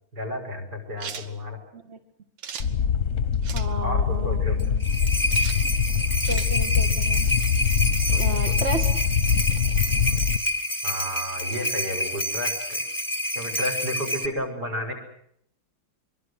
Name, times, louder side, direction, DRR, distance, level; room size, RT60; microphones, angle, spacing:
voice 1, 0.1-1.6 3.8-4.6 8.1-8.6 10.8-12.8 13.3-14.9, left 1 dB, 50° right, 4 dB, 6.5 m, -32 dB
sound 1, 1.0-1.3 2.4-2.7 3.4-3.7 5.3-5.6 6.2-6.5, right 7 dB, 70° right, 2.0 m, -37 dB
sound 2, 2.6-10.4, left 7 dB, 45° left, 1.3 m, -23 dB
voice 2, 3.5-4.9 6.3-7.3 8.2-8.9, right 3 dB, 35° right, 6 dB, 1.6 m, -33 dB
sound 3, 4.6-14.3, equal, 10° left, 1.9 m, -28 dB
24.0 x 23.5 x 8.1 m, 0.71 s
omnidirectional pair, 2.2 m